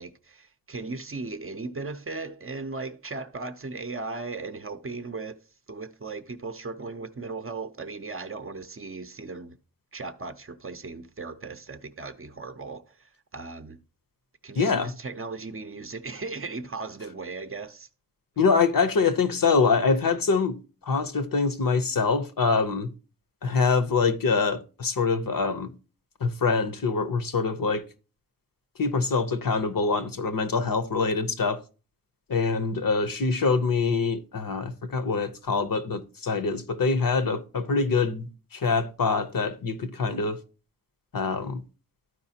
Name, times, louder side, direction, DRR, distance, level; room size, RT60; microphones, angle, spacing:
voice 1, 0.0-5.4 5.7-9.6 9.9-13.8 14.4-17.9, right 3 dB, 40° right, 0.5 m, -37 dB
voice 2, 14.6-14.9 18.4-20.6 20.8-22.9 23.4-25.7 26.2-27.8 28.8-31.6 32.3-40.4 41.1-41.6, left 4 dB, 65° left, 0.8 m, -25 dB
12.5 x 4.8 x 2.8 m
wide cardioid pair, 80°, 36 cm